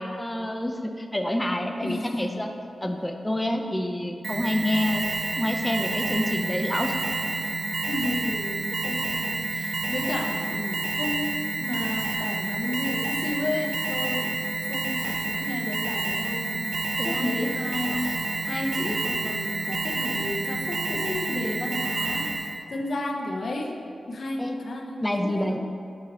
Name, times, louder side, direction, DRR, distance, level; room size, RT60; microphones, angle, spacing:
voice 1, 0.0-2.5 2.8-5.1 5.4-7.0 17.0-17.3 24.4-24.6 25.0-25.6, left 1 dB, 10° left, 4 dB, 0.4 m, -27 dB
voice 2, 1.8-2.4 2.8-3.0 7.9-14.3 14.7-18.2 18.4-22.3 22.7-23.7 24.1-25.6, left 2 dB, 60° left, 2 dB, 0.6 m, -32 dB
Alarm, 4.2-22.6, right 3 dB, 50° right, 0.4 m, -29 dB
6.2 x 4.3 x 4.2 m, 2.4 s
wide cardioid pair, 110°, 0 cm